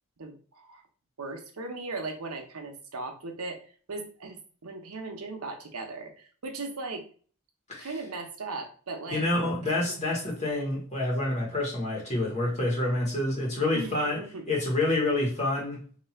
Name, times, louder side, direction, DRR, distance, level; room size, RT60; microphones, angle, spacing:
voice 1, 0.2-0.8 1.2-7.1 7.8-9.3 9.6-9.8 13.7-14.4, right 3 dB, 85° right, 3 dB, 0.9 m, -38 dB
voice 2, 9.1-14.2 14.5-15.8, left 2 dB, 30° left, -4 dB, 1.8 m, -28 dB
3.3 x 3.0 x 4.3 m, 0.42 s
head